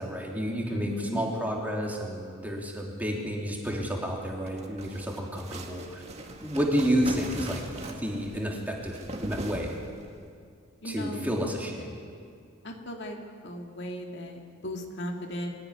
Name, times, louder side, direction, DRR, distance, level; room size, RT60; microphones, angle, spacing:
voice 1, 0.0-6.0 6.4-9.8 10.8-11.9, equal, 10° right, -2 dB, 3.1 m, -30 dB
voice 2, 0.7-1.3 10.8-11.3 12.6-13.2 13.4-15.5, left 1 dB, 55° left, 2 dB, 2.3 m, -36 dB
sound 1, 4.3-10.2, right 1 dB, 30° right, 2.1 m, -40 dB
23.5 x 17.0 x 9.9 m, 2.3 s
head